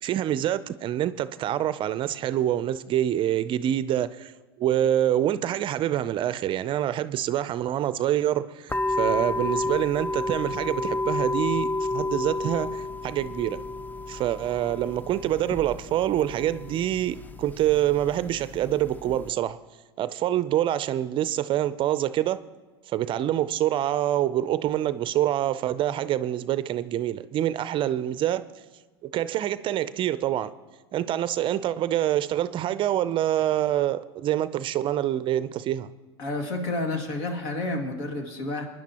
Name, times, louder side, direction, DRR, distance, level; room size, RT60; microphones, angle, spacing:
voice 1, 0.0-4.3 4.6-13.6 14.1-19.6 20.0-22.4 22.9-28.5 29.0-30.5 30.9-35.9, right 12 dB, 40° right, 0.5 m, -26 dB
sound 1, 8.7-19.3, left 2 dB, 15° left, 0.5 m, -31 dB
voice 2, 36.2-38.7, left 2 dB, 65° left, 2.1 m, -30 dB
22.5 x 10.5 x 2.9 m
hypercardioid pair, 90°, 13 cm